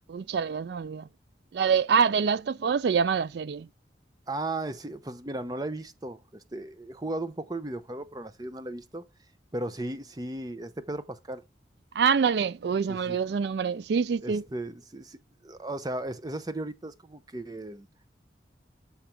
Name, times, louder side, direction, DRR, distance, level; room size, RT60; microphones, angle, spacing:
voice 1, 0.1-1.1 1.5-3.7 11.9-14.5, right 6 dB, 70° right, 0.3 m, -25 dB
voice 2, 4.3-9.0 9.5-11.4 12.9-13.2 14.2-15.2 15.4-17.9, right 2 dB, 20° right, 0.6 m, -36 dB
7.2 x 5.1 x 4.3 m
head